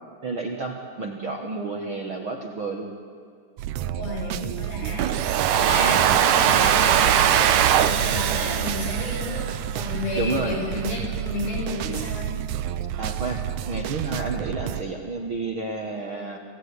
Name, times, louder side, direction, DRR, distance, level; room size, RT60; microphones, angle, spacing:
voice 1, 0.2-2.9 4.4-4.6 5.8-6.2 10.1-10.6 13.0-13.4 13.7-16.4, right 3 dB, 45° right, 2 dB, 1.8 m, -31 dB
sound 1, 3.6-14.8, right 11 dB, 85° right, 1.6 m, -30 dB
voice 2, 4.0-5.1 5.5-12.3, left 2 dB, 75° left, -2 dB, 8.7 m, -31 dB
Domestic sounds home sounds, 5.0-9.9, right 10 dB, 70° right, 2.4 m, -21 dB
27.5 x 16.5 x 9.8 m, 2.3 s
omnidirectional pair, 4.3 m